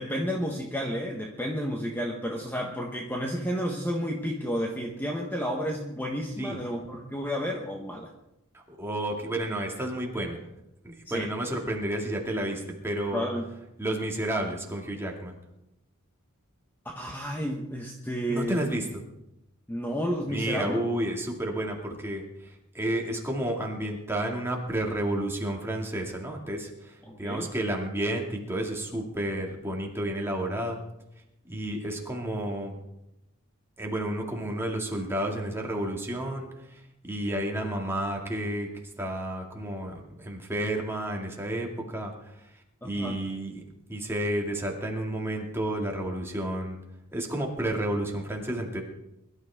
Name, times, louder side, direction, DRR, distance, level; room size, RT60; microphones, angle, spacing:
voice 1, 0.0-8.1 11.0-11.3 13.1-13.5 16.8-18.6 19.7-20.8 27.0-27.5 42.8-43.2, equal, 10° left, 0 dB, 1.2 m, -31 dB
voice 2, 8.5-10.4 10.8-13.2 13.8-15.4 18.3-19.0 20.3-30.8 31.4-32.8 33.8-38.7 39.0-42.5 42.8-43.6 43.9-46.8 47.1-48.8, right 1 dB, 10° right, 0 dB, 2.4 m, -31 dB
22.5 x 12.5 x 3.7 m, 0.87 s
head